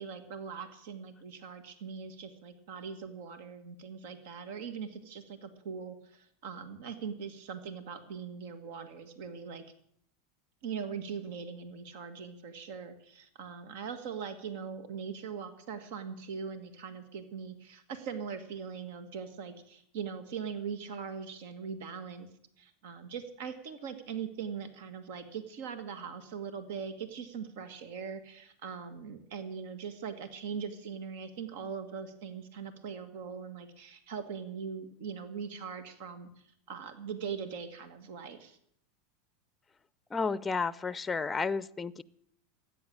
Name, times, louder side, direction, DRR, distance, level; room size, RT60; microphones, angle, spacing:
voice 1, 0.0-9.6 10.6-22.3 22.6-36.3 36.7-38.6, right 6 dB, 70° right, 9 dB, 1.7 m, -41 dB
voice 2, 40.1-42.0, left 4 dB, 15° left, 18 dB, 0.5 m, -32 dB
14.0 x 9.5 x 8.7 m, 0.70 s
supercardioid pair, 115°, 0 cm